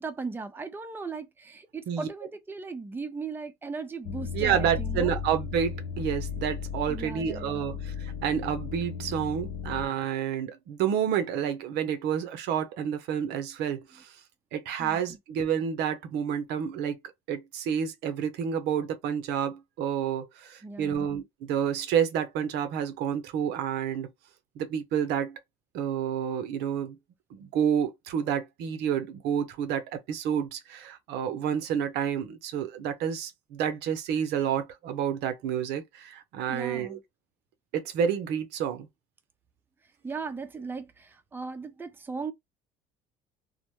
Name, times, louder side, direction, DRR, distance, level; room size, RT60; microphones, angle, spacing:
voice 1, 0.0-5.2 6.9-7.8 14.8-15.0 20.6-21.1 36.5-37.0 40.0-42.3, right 4 dB, 10° right, 0.5 m, -37 dB
sound 1, 4.0-9.9, left 7 dB, 80° left, 0.4 m, -35 dB
voice 2, 4.3-14.1 14.5-17.0 17.3-24.1 24.6-25.4 25.7-27.0 27.3-37.0 37.7-38.9, right 8 dB, 65° right, 0.6 m, -29 dB
2.1 x 2.0 x 2.9 m
supercardioid pair, 75°, 18 cm